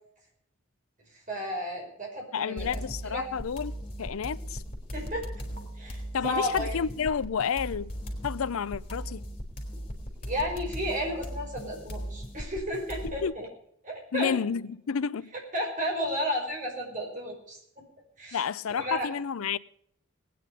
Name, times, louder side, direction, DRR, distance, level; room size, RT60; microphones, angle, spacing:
voice 1, 1.3-3.3 4.9-5.3 5.8-6.8 10.2-13.5 13.8-14.3 15.5-17.8 18.2-18.5 18.8-19.1, equal, 40° right, 5.3 m, -33 dB
voice 2, 2.3-3.7 4.0-4.6 6.1-7.9 8.2-9.2 13.0-13.3 14.1-15.3 18.3-19.6, left 6 dB, 75° left, 0.5 m, -30 dB
sound 1, 2.6-13.2, equal, 30° left, 3.2 m, -38 dB
20.0 x 9.5 x 5.3 m
head